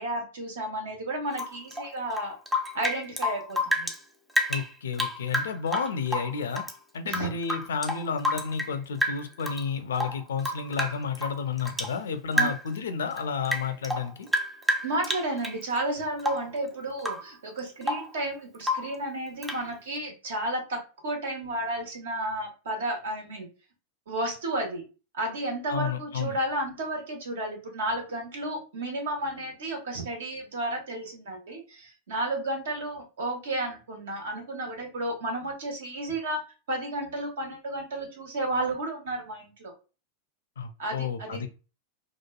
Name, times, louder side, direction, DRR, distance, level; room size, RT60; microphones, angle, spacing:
voice 1, 0.0-2.4 2.7-3.9 7.0-7.3 12.3-12.5 14.8-23.5 24.1-24.8 25.1-36.4 36.7-39.7 40.8-41.4, right 1 dB, 60° right, 2 dB, 1.0 m, -32 dB
Rain / Drip, 1.3-4.0 4.3-6.8 7.1-8.7 9.0-9.6 9.9-12.0 12.3-12.8 13.1-15.6 16.2-16.6 17.0-17.3 17.6-18.1 18.6-19.0 19.4-19.7, left 1 dB, 5° right, 0.4 m, -30 dB
voice 2, 4.5-6.6 6.9-14.3 25.7-26.4 40.6-41.5, left 6 dB, 65° left, 9 dB, 0.4 m, -31 dB
3.0 x 2.2 x 2.2 m, 0.32 s
figure-of-eight pair, 90°, 0 cm